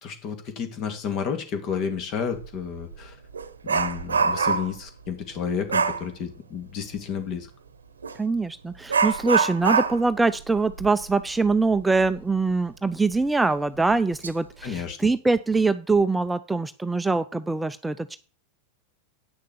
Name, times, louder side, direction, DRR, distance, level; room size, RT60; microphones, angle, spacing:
voice 1, 0.0-3.2 3.7-7.5 14.6-15.0, left 7 dB, 45° left, 7 dB, 2.6 m, -31 dB
Dog, 2.3-2.5 2.9-4.8 5.7-6.1 8.0-8.2 8.9-12.2 12.5-12.6 13.1-13.2 13.9-14.3 14.7-14.9, right 5 dB, 90° right, 0.9 m, -25 dB
voice 2, 8.2-18.2, right 3 dB, 10° right, 11 dB, 0.6 m, -23 dB
8.9 x 6.6 x 6.7 m, 0.37 s
hypercardioid pair, 95°, 0 cm